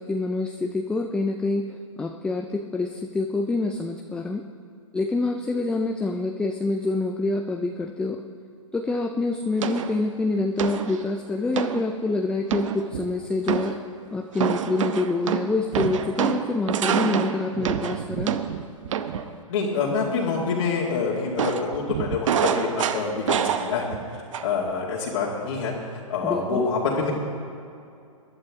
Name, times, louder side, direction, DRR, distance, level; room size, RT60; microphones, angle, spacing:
voice 1, 0.0-4.4 4.9-8.2 8.7-13.8 14.1-18.4 26.2-26.6, left 3 dB, 5° left, 5 dB, 0.4 m, -26 dB
sound 1, 9.6-10.0 10.6-11.0 11.6-11.8 12.5-13.1 13.5-13.8 14.4-19.3 21.4-24.0 24.3-24.7, right 8 dB, 65° right, 0.9 m, -26 dB
voice 2, 19.5-24.0 24.4-25.7 26.1-27.1, left 5 dB, 65° left, -5 dB, 2.3 m, -26 dB
22.0 x 11.0 x 3.6 m, 2.5 s
hypercardioid pair, 130°, 18 cm